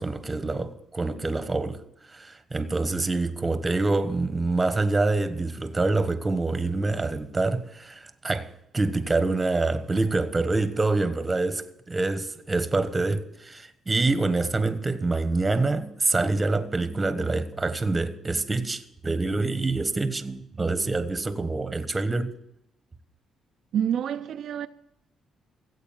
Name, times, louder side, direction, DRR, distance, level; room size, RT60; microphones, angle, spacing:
voice 1, 0.0-1.8 2.1-22.3, right 3 dB, 20° right, 1.2 m, -26 dB
voice 2, 23.7-24.7, right 9 dB, 65° right, 0.5 m, -27 dB
15.0 x 8.2 x 7.4 m
cardioid pair, 90°, 0 cm